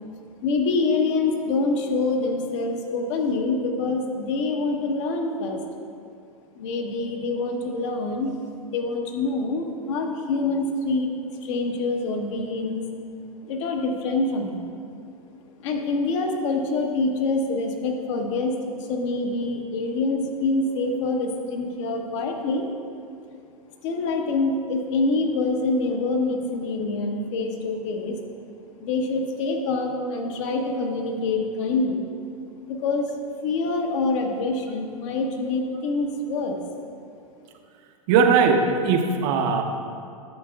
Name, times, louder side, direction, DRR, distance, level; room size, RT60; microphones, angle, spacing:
voice 1, 0.4-5.6 6.5-8.4 8.7-11.1 11.4-12.8 13.4-14.7 15.6-22.7 23.8-28.2 28.8-32.0 32.6-36.6, left 3 dB, 50° left, 2 dB, 1.1 m, -26 dB
voice 2, 38.1-39.6, right 5 dB, 45° right, 4 dB, 0.8 m, -19 dB
11.0 x 7.6 x 2.3 m, 2.4 s
hypercardioid pair, 110°, 19 cm